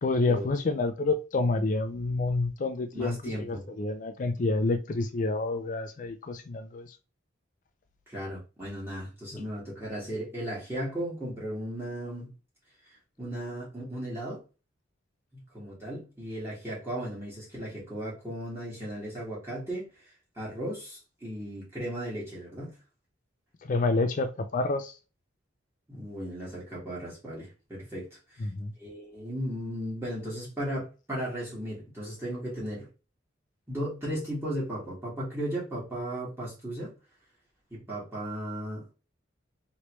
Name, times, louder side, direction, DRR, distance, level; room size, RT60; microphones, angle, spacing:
voice 1, 0.0-7.0 9.3-9.4 23.6-25.0 28.4-28.7, left 3 dB, 40° left, 0.4 m, -28 dB
voice 2, 2.9-3.6 8.1-12.3 13.2-14.4 15.3-19.9 20.4-22.7 25.9-28.5 28.8-32.9 33.7-36.9 37.7-38.9, equal, 10° right, 1.6 m, -36 dB
3.2 x 3.0 x 3.0 m
head